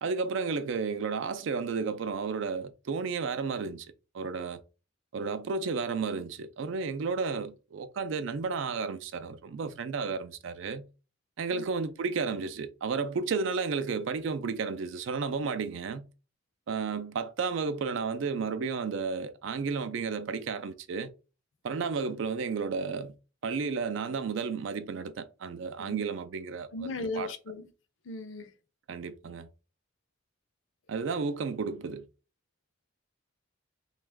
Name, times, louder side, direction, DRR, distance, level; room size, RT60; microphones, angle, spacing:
voice 1, 0.0-3.9 4.1-4.6 5.1-10.9 11.4-16.1 16.7-21.1 21.6-23.2 23.4-27.3 28.9-29.5 30.9-32.1, right 5 dB, 70° right, 0.4 m, -32 dB
voice 2, 26.7-27.6 28.1-28.5, left 2 dB, 70° left, 0.5 m, -36 dB
3.0 x 2.3 x 3.4 m
head